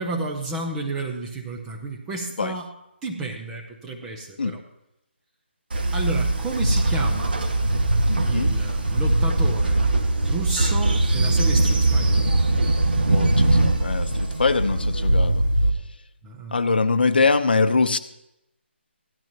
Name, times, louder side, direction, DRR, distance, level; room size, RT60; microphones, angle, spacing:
voice 1, 0.0-2.7 3.0-4.6 5.9-7.3 8.2-9.8 10.2-12.2 16.2-16.6, right 2 dB, 5° right, 0 dB, 0.5 m, -31 dB
Train, 5.7-15.7, right 2 dB, 50° right, 1.9 m, -21 dB
voice 2, 8.1-8.6 13.1-15.4 16.5-18.0, left 4 dB, 50° left, 11 dB, 0.9 m, -23 dB
17.0 x 12.5 x 3.0 m, 0.87 s
hypercardioid pair, 175°, 7 cm